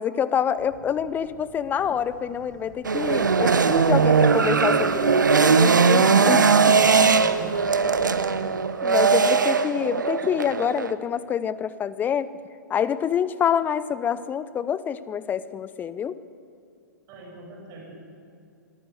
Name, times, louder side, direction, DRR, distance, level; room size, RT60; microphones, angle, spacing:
voice 1, 0.0-6.8 8.8-12.3 12.7-16.2, left 8 dB, 15° left, 16 dB, 0.7 m, -26 dB
Telephone, 0.6-8.6, right 1 dB, 40° left, 4.3 m, -45 dB
sound 1, 2.8-10.9, right 5 dB, 75° right, 1.1 m, -19 dB
voice 2, 7.1-8.6 17.1-17.9, right 2 dB, 35° right, -1 dB, 7.3 m, -41 dB
24.5 x 13.5 x 8.0 m, 2.4 s
figure-of-eight pair, 110°, 10 cm